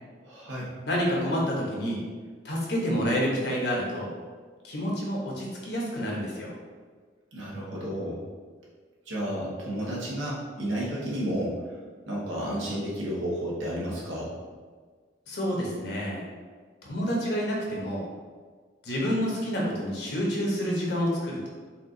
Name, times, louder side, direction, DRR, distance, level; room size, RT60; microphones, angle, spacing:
voice 1, 0.2-0.7 7.3-8.2 9.0-11.8 12.1-14.4, equal, 80° right, -5 dB, 1.3 m, -32 dB
voice 2, 0.8-2.0 2.4-4.1 4.6-6.5 15.3-16.3 16.8-18.1 18.8-21.5, equal, 60° left, -3 dB, 1.1 m, -28 dB
4.4 x 2.4 x 3.8 m, 1.5 s
head